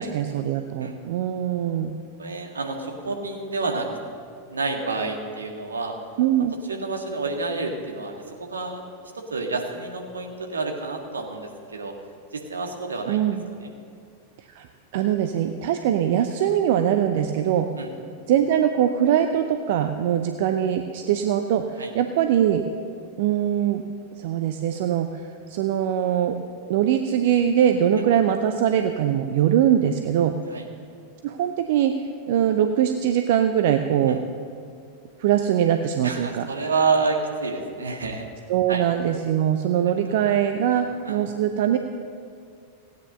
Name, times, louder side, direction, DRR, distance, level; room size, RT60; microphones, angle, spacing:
voice 1, 0.0-1.9 6.2-6.5 13.1-13.5 14.4-14.7 14.9-17.7 18.3-22.6 23.2-23.8 24.2-26.4 26.7-30.4 31.2-31.9 32.3-34.2 35.2-36.5 38.5-41.8, right 10 dB, 50° right, 7 dB, 0.6 m, -22 dB
voice 2, 2.2-3.9 4.5-5.9 6.7-8.8 9.1-11.9 12.3-13.2 13.6-13.7 17.8-17.9 21.8-21.9 30.5-30.6 34.1-34.2 36.0-38.3 38.7-38.8 40.7-41.2, right 4 dB, 75° right, 2 dB, 1.7 m, -29 dB
16.5 x 9.3 x 6.6 m, 2.4 s
figure-of-eight pair, 90°, 0 cm